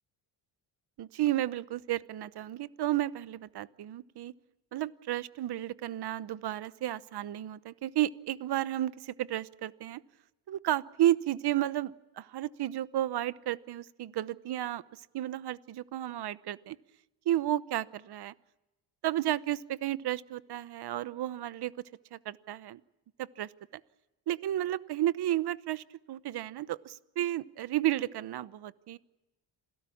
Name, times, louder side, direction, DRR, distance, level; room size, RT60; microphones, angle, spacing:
voice 1, 1.0-4.3 4.7-10.0 10.5-14.8 15.1-16.8 17.2-18.3 19.0-21.7 22.1-22.8 23.2-23.8 24.3-29.0, right 13 dB, 60° right, 17 dB, 0.9 m, -32 dB
27.0 x 17.5 x 8.6 m, 1.0 s
cardioid pair, 120°, 44 cm